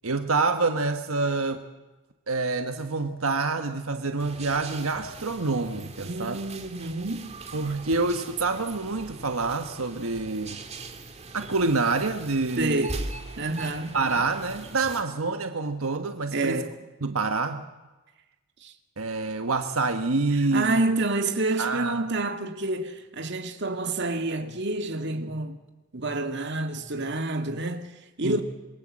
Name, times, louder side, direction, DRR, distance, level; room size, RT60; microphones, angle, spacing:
voice 1, 0.0-1.6 2.3-6.4 7.5-10.6 11.3-12.9 13.9-16.6 17.0-17.6 19.0-20.8 21.6-22.0 28.2-28.4, right 3 dB, 80° right, 1.4 m, -27 dB
sound 1, 4.2-15.0, right 2 dB, 30° right, 2.1 m, -41 dB
voice 2, 6.0-7.3 12.6-13.0 13.4-13.9 16.3-16.7 18.6-18.7 20.5-25.6 25.9-28.4, right 2 dB, 55° right, 2.1 m, -28 dB
26.5 x 22.0 x 7.6 m
head